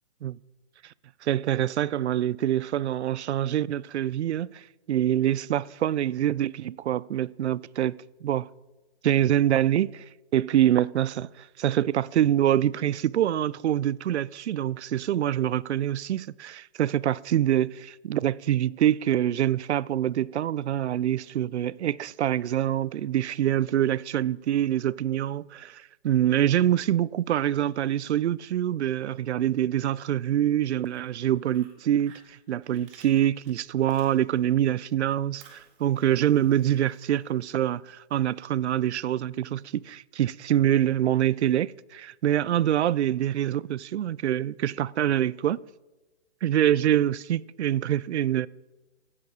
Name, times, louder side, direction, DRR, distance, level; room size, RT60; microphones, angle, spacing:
voice 1, 1.2-4.6 4.9-8.5 9.0-10.0 10.3-45.6 46.4-48.5, right 11 dB, 80° right, 0.5 m, -25 dB
Fire, 30.8-34.6 34.9-37.7, right 6 dB, 25° right, 1.8 m, -57 dB
15.5 x 10.0 x 4.2 m
hypercardioid pair, 155°, 33 cm